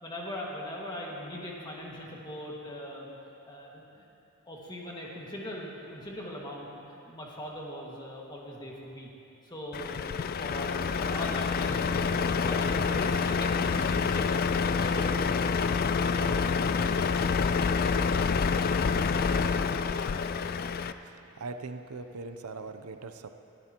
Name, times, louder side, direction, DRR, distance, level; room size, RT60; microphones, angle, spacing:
voice 1, 0.0-3.1 3.5-4.0 4.5-9.1 9.4-15.3 15.9-16.4, equal, 20° left, -3 dB, 1.9 m, -40 dB
Truck, 9.7-20.9, left 5 dB, 45° left, 0.3 m, -27 dB
voice 2, 20.4-23.3, right 3 dB, 85° right, 8 dB, 0.6 m, -42 dB
20.5 x 13.0 x 3.0 m, 2.8 s
head